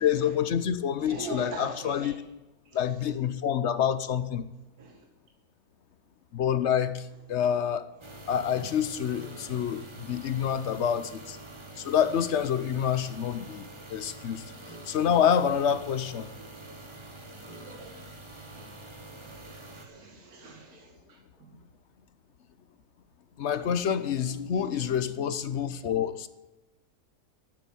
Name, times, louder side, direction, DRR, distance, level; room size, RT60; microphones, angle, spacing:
voice 1, 0.0-2.1 2.7-4.4 6.3-7.9 8.3-11.4 11.8-14.4 14.9-16.3 23.4-26.3, left 8 dB, 55° left, 0.9 m, -27 dB
voice 2, 1.0-2.1 2.7-2.8 4.8-5.0 9.4-9.6 16.6-16.8 17.5-17.9 18.5-18.7 19.2-21.5 24.3-25.2, right 2 dB, 65° right, 2.4 m, -43 dB
sound 1, 8.0-19.9, right 2 dB, 20° right, 1.4 m, -46 dB
12.0 x 9.1 x 8.7 m
omnidirectional pair, 1.7 m